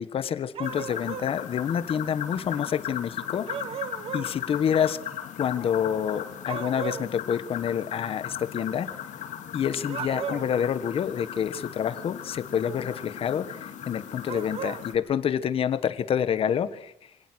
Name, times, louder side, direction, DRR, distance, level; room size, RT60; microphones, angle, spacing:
voice 1, 0.0-3.5 4.1-5.0 5.4-8.9 9.5-16.9, left 8 dB, 45° left, 13 dB, 1.4 m, -28 dB
sound 1, 0.5-1.3 3.5-4.3 6.5-7.1 9.8-10.6 14.2-14.8, right 8 dB, 45° right, 1.5 m, -35 dB
sound 2, 0.6-15.0, left 10 dB, 70° left, 3.0 m, -38 dB
27.5 x 25.5 x 6.4 m, 0.75 s
cardioid pair, 150°, 13 cm